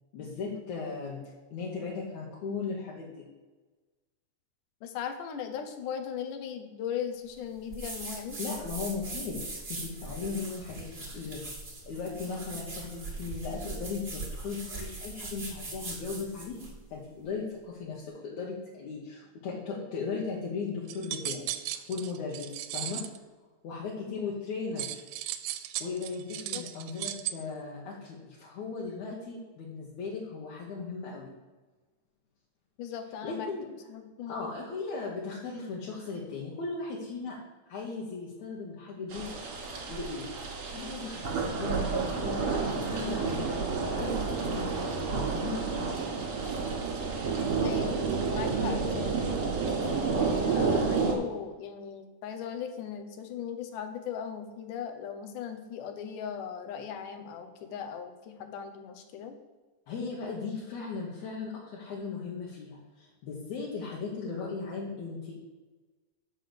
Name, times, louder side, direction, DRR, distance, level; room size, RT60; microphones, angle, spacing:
voice 1, 0.1-1.2 1.5-3.3 8.4-11.5 11.9-23.0 23.6-25.0 25.8-31.3 33.2-33.7 34.3-37.4 37.7-39.3 39.9-40.3 40.7-43.5 43.9-45.9 50.7-50.9 59.9-65.3, left 4 dB, 70° left, -4 dB, 2.5 m, -37 dB
voice 2, 4.8-8.4 26.5-26.6 32.8-33.5 33.9-34.5 47.6-48.0 48.3-49.2 50.1-59.4, left 8 dB, 90° left, 6 dB, 2.5 m, -38 dB
sound 1, 7.7-16.8, right 3 dB, 25° right, 1.6 m, -40 dB
sound 2, 20.9-23.2 24.8-27.3, right 13 dB, 85° right, 2.1 m, -36 dB
sound 3, 39.1-51.2, right 4 dB, 50° right, 2.4 m, -30 dB
6.6 x 6.2 x 6.6 m, 1.3 s
omnidirectional pair, 3.5 m